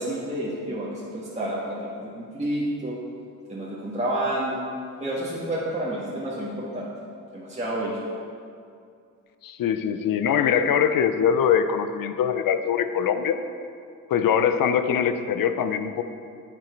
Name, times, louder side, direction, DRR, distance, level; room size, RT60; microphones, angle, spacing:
voice 1, 0.0-3.0 3.5-4.7 5.0-6.9 7.3-8.0, right 1 dB, 20° right, -7 dB, 1.7 m, -29 dB
voice 2, 9.4-13.4 14.1-16.0, left 8 dB, 70° left, 9 dB, 0.6 m, -22 dB
8.8 x 8.2 x 4.6 m, 2.3 s
cardioid pair, 85°, 35 cm